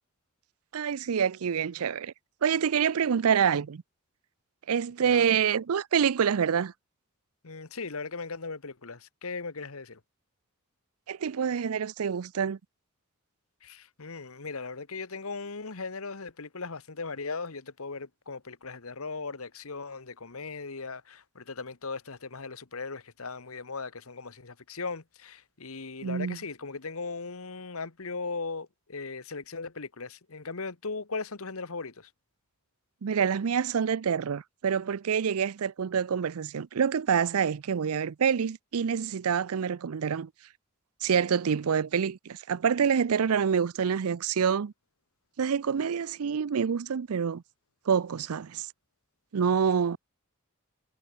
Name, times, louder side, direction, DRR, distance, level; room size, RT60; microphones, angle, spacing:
voice 1, 0.7-2.1 2.4-3.8 4.7-6.7 11.1-12.6 26.0-26.4 33.0-40.3 41.0-44.7 45.4-47.4 47.9-48.7 49.3-50.0, right 7 dB, 80° right, 0.5 m, -27 dB
voice 2, 7.4-10.0 13.6-32.1, left 4 dB, 75° left, 1.4 m, -38 dB
head